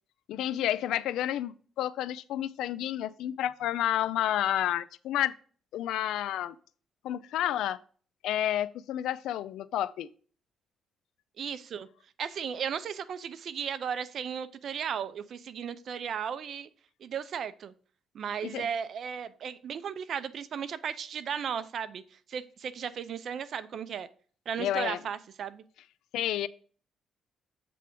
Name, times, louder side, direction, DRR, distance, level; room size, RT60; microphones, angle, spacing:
voice 1, 0.3-5.3 5.7-6.5 7.0-7.8 8.2-10.1 18.4-18.7 24.6-25.0 26.1-26.5, left 12 dB, 85° left, 0.3 m, -30 dB
voice 2, 11.4-11.9 12.2-16.7 17.0-17.7 18.1-22.0 22.3-24.1 24.5-25.6, right 7 dB, 60° right, 0.5 m, -35 dB
7.5 x 3.4 x 5.2 m
cardioid pair, 90°, 0 cm